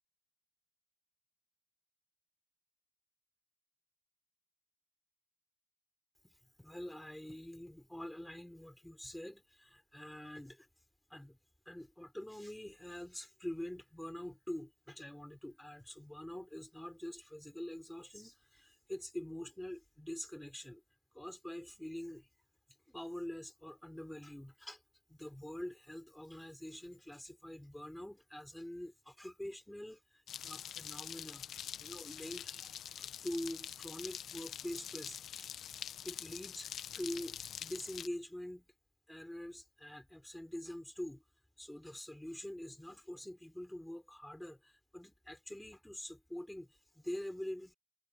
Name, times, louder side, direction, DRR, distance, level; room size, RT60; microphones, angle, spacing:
voice 1, 6.2-10.7 11.1-11.4 11.7-20.8 21.1-22.3 22.9-24.8 25.1-31.5 31.8-35.5 36.0-38.7 39.1-41.2 41.6-47.7, left 1 dB, 5° left, 5.8 m, -45 dB
sound 1, 30.3-38.1, left 9 dB, 70° left, 1.1 m, -45 dB
cardioid pair, 90°, 0 cm